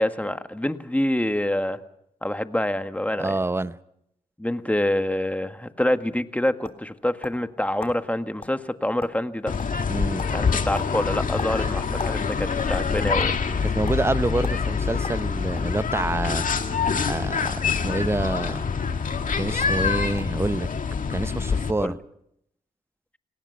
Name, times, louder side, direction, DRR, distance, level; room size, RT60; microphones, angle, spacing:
voice 1, 0.0-1.8 2.2-3.3 4.4-9.5 10.3-13.3 21.8-21.9, left 1 dB, 10° left, 1.7 m, -26 dB
voice 2, 3.2-3.7 9.9-10.2 11.6-11.7 13.7-16.4 17.0-18.6 19.4-20.7 21.1-22.0, right 2 dB, 15° right, 0.9 m, -27 dB
sound 1, 6.1-7.5 7.8-8.0 8.4-8.6 8.9-9.3 9.6-9.9 10.2-10.4 10.7-12.2 12.5-13.3 13.9-14.0 14.4-14.6 15.0-15.7 16.5-16.7 17.4-17.7 18.0-18.5 19.3-19.4 19.6-19.8 20.2-20.4, left 3 dB, 35° left, 3.7 m, -39 dB
sound 2, 9.5-21.7, left 5 dB, 55° left, 2.0 m, -25 dB
29.5 x 18.5 x 5.7 m
supercardioid pair, 45°, 16 cm